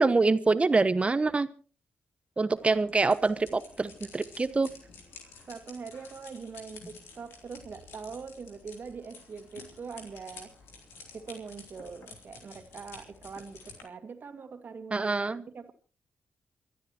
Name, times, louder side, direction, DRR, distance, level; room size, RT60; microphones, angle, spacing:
voice 1, 0.0-1.5 2.4-4.7 14.9-15.4, right 3 dB, 30° right, 1.1 m, -25 dB
sound 1, 2.6-13.8, left 4 dB, 90° left, 3.2 m, -51 dB
voice 2, 5.5-10.5 11.1-15.7, right 5 dB, 60° right, 2.1 m, -43 dB
28.5 x 12.5 x 3.0 m
cardioid pair, 60°, 4 cm